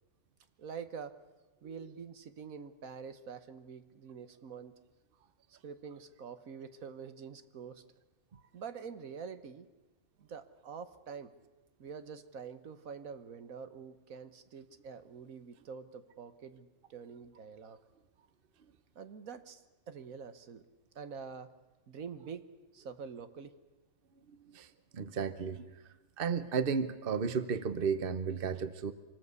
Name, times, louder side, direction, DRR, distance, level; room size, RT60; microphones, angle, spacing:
voice 1, 0.6-1.2 1.6-4.7 5.5-7.8 8.5-9.7 10.2-11.3 11.8-17.8 18.9-20.6 20.9-21.5 21.9-23.6, right 6 dB, 80° right, 11 dB, 1.6 m, -46 dB
voice 2, 24.9-25.7 26.2-28.9, right 6 dB, 45° right, 13 dB, 1.1 m, -33 dB
25.5 x 19.0 x 8.3 m, 1.1 s
omnidirectional pair, 1.4 m